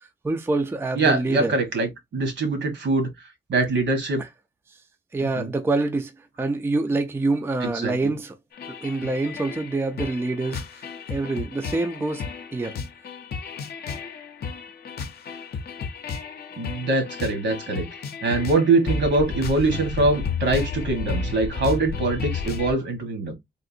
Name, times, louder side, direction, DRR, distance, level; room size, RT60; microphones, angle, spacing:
voice 1, 0.2-1.5 4.2-4.3 5.1-6.1 6.4-8.3 8.8-10.6 11.1-12.3 12.5-12.8, right 2 dB, 10° right, 0.4 m, -25 dB
voice 2, 0.9-3.1 3.5-4.2 5.3-5.5 7.6-8.1 16.6-17.9 18.2-23.3, right 3 dB, 70° right, 1.3 m, -23 dB
sound 1, 8.5-22.7, left 5 dB, 55° left, 0.6 m, -32 dB
3.6 x 2.5 x 2.6 m
wide cardioid pair, 140°, 20 cm